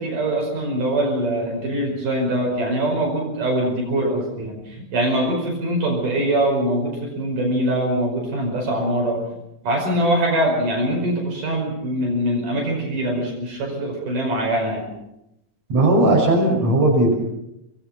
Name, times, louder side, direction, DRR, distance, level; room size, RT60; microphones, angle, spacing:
voice 1, 0.0-9.2 9.6-14.9, right 1 dB, 75° right, -1 dB, 6.8 m, -23 dB
voice 2, 15.7-17.1, right 1 dB, 50° right, 0 dB, 7.0 m, -17 dB
26.5 x 20.5 x 5.9 m, 0.84 s
omnidirectional pair, 3.8 m